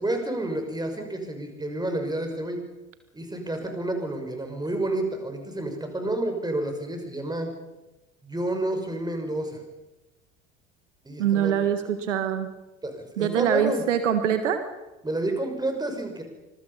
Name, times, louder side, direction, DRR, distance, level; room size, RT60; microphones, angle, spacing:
voice 1, 0.0-2.6 3.1-7.5 8.2-9.6 11.0-11.5 12.8-13.8 15.0-16.2, right 1 dB, 10° right, 5 dB, 5.7 m, -29 dB
voice 2, 11.2-12.5 13.2-14.6, right 9 dB, 70° right, 9 dB, 1.7 m, -24 dB
26.0 x 22.0 x 5.6 m, 1.0 s
figure-of-eight pair, 65°, 37 cm